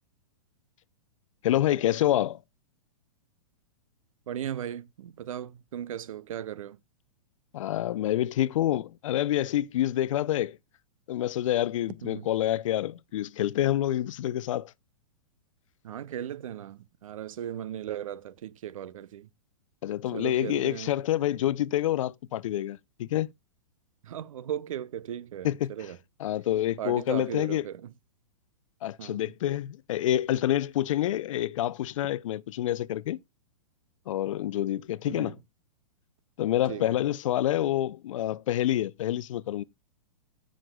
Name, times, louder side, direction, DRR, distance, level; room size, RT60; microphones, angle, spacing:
voice 1, 1.4-2.4 7.5-10.6 11.1-14.7 19.8-23.3 25.4-25.7 26.2-27.6 28.8-33.2 34.1-35.4 36.4-39.6, left 13 dB, 65° left, 0.5 m, -27 dB
voice 2, 4.3-6.8 12.0-12.3 15.8-19.3 20.1-20.9 24.0-26.0 26.8-27.9 29.0-29.3 35.0-35.4 36.6-37.0, right 10 dB, 70° right, 0.8 m, -37 dB
16.5 x 6.4 x 2.2 m
hypercardioid pair, 125°, 18 cm